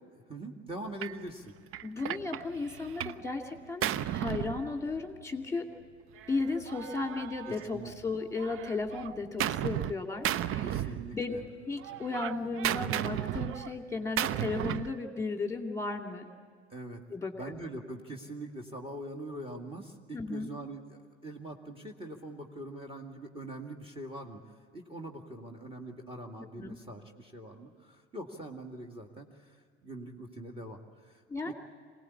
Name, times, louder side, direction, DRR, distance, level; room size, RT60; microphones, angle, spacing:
voice 1, 0.1-1.5 7.5-7.9 10.6-11.4 16.7-17.0 17.3-31.5, right 1 dB, 15° right, 2 dB, 2.2 m, -43 dB
Gunshot gunfire, 1.0-1.2 1.7-3.2 3.5-5.2 6.2-8.0 8.4-9.9 10.2-11.5 11.8-15.0, right 11 dB, 40° right, 0.6 m, -34 dB
voice 2, 1.8-5.7 6.3-10.7 11.1-11.4 11.7-16.3 17.1-17.3 20.1-20.5 26.4-26.8 31.3-31.5, left 3 dB, 10° left, 3 dB, 2.4 m, -35 dB
26.0 x 18.5 x 8.5 m, 2.1 s
figure-of-eight pair, 60°, 33 cm